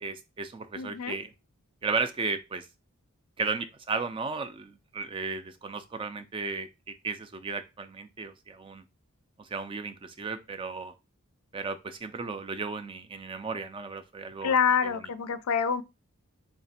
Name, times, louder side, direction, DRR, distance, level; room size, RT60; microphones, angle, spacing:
voice 1, 0.0-1.3 1.8-2.7 3.4-8.8 9.4-10.9 11.5-14.5 14.8-15.1, right 4 dB, 25° right, 0.3 m, -35 dB
voice 2, 0.8-1.2 14.4-15.8, left 6 dB, 80° left, 0.4 m, -26 dB
3.4 x 2.4 x 4.0 m
head